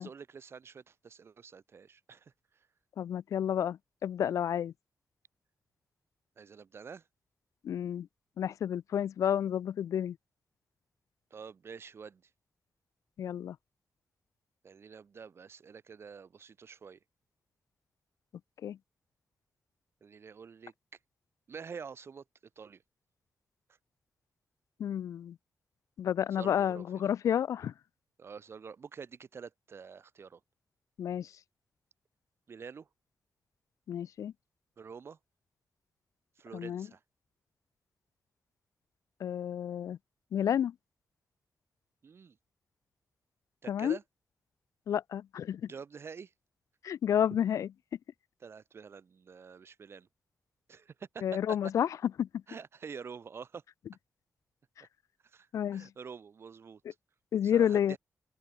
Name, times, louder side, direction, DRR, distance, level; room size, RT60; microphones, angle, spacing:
voice 1, 0.0-2.7 6.4-7.0 11.3-12.2 14.6-17.0 20.0-20.7 21.5-22.2 22.6-22.8 26.3-27.1 28.2-30.4 32.5-32.9 34.8-35.2 36.4-37.0 42.0-42.4 43.6-44.0 45.6-46.3 48.4-50.1 50.7-51.2 51.5-51.6 52.5-53.6 55.2-56.8 57.4-58.0, right 6 dB, 50° right, 4.5 m, -47 dB
voice 2, 3.0-4.7 7.6-8.1 8.4-10.2 13.2-13.6 18.6-18.8 24.8-25.4 26.0-27.7 31.0-31.3 33.9-34.3 36.5-36.9 39.2-40.0 40.3-40.7 43.7-44.0 44.9-45.6 46.8-47.7 51.2-51.9 52.2-52.3 55.5-55.9 57.3-58.0, left 9 dB, 80° left, 0.3 m, -30 dB
open air
wide cardioid pair, 145°, 5 cm